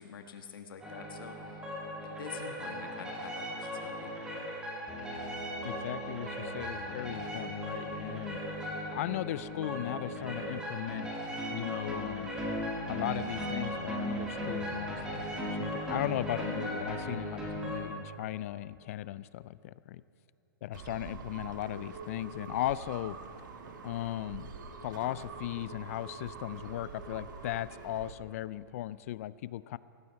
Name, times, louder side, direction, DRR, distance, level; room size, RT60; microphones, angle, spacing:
voice 1, 0.0-1.7 2.0-4.1, left 6 dB, 80° left, 5 dB, 1.6 m, -47 dB
sound 1, 0.8-17.8, equal, 5° right, 2.5 m, -37 dB
voice 2, 5.6-11.1 11.5-12.3 12.9-20.0 20.6-23.2 23.8-24.5 24.8-29.8, left 14 dB, 40° left, 18 dB, 0.4 m, -37 dB
sound 2, 20.7-28.1, right 5 dB, 60° right, 1.6 m, -45 dB
17.5 x 16.0 x 4.7 m, 2.8 s
hypercardioid pair, 160°, 11 cm